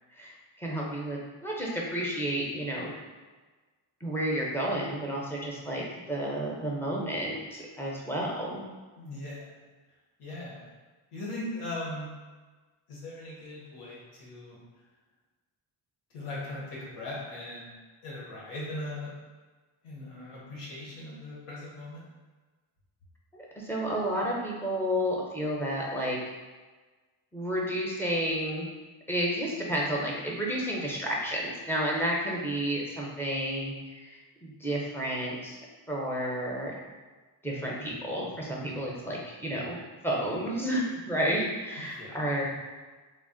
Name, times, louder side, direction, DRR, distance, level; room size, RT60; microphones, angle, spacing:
voice 1, 0.1-2.9 4.0-8.6 23.3-26.2 27.3-28.7 29.1-35.6 35.9-36.7 37.4-39.8 40.0-42.5, equal, 5° left, -3 dB, 0.5 m, -31 dB
voice 2, 9.0-9.6 10.2-10.7 11.1-12.1 12.9-14.6 16.1-17.7 18.0-19.1 19.8-22.0 41.8-42.6, left 1 dB, 90° left, -5 dB, 1.0 m, -39 dB
2.4 x 2.0 x 3.7 m, 1.3 s
cardioid pair, 90°, 50 cm